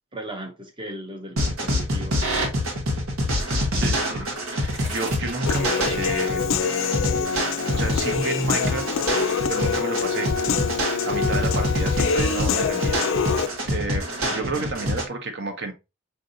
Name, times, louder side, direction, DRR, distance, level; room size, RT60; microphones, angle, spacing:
voice 1, 0.0-2.2 14.2-14.7, right 1 dB, 25° right, 0.7 m, -37 dB
sound 1, 1.4-15.0, equal, 85° right, 1.1 m, -26 dB
voice 2, 3.7-4.3 4.5-6.4 7.7-9.2 9.5-10.3 11.1-13.0 13.6-15.7, right 3 dB, 55° right, 0.8 m, -30 dB
Human voice / Piano, 5.5-13.5, left 6 dB, 65° left, 0.4 m, -25 dB
4.7 x 2.6 x 2.6 m
head